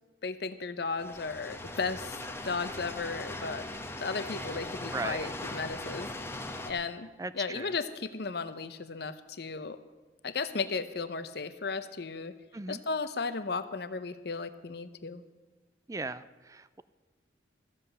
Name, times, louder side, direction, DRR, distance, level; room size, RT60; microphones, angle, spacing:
voice 1, 0.2-3.7 4.0-6.1 6.7-7.1 7.3-9.8 10.2-12.3 12.7-15.2, left 4 dB, 60° left, 12 dB, 0.7 m, -35 dB
sound 1, 1.0-6.7, left 2 dB, 15° left, 1.1 m, -39 dB
voice 2, 4.9-5.3 7.2-7.7 12.5-12.8 15.9-16.8, right 3 dB, 15° right, 14 dB, 0.4 m, -38 dB
14.0 x 7.8 x 8.1 m, 1.3 s
head